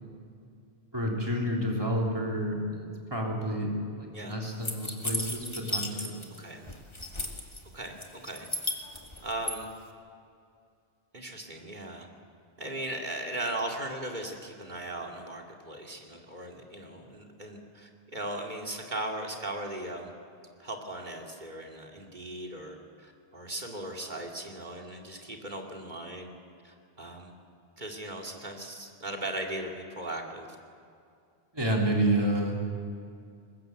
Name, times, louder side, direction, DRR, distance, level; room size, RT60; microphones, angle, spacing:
voice 1, 0.9-6.4 31.5-32.6, right 1 dB, 20° right, -2 dB, 3.5 m, -30 dB
sound 1, 4.6-6.4 6.7-7.6 8.0-9.6, left 1 dB, 25° left, 1.9 m, -34 dB
voice 2, 7.7-8.5 9.2-9.7 11.1-12.1 12.6-20.1 20.6-26.3 26.6-27.3 27.8-30.5, right 1 dB, 45° right, 1 dB, 2.7 m, -38 dB
21.5 x 20.0 x 7.9 m, 2.3 s
omnidirectional pair, 1.1 m